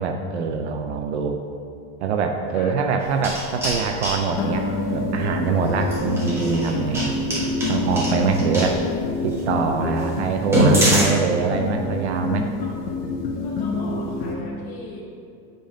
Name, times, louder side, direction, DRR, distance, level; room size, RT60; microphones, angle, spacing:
voice 1, 0.0-1.4 2.0-7.2 7.7-8.8 9.2-12.5, right 5 dB, 45° right, 4 dB, 0.5 m, -24 dB
sound 1, 3.0-4.2 5.8-8.7 9.3-9.4 9.8-9.9 10.4-11.1, right 1 dB, 5° right, 1.1 m, -22 dB
sound 2, 4.4-14.3, left 3 dB, 70° left, 1.4 m, -27 dB
Acoustic guitar, 4.4-8.8, left 1 dB, 30° left, 0.6 m, -34 dB
voice 2, 13.4-15.2, left 1 dB, 50° left, -8 dB, 1.8 m, -39 dB
7.9 x 5.1 x 5.1 m, 2.6 s
supercardioid pair, 170°, 48 cm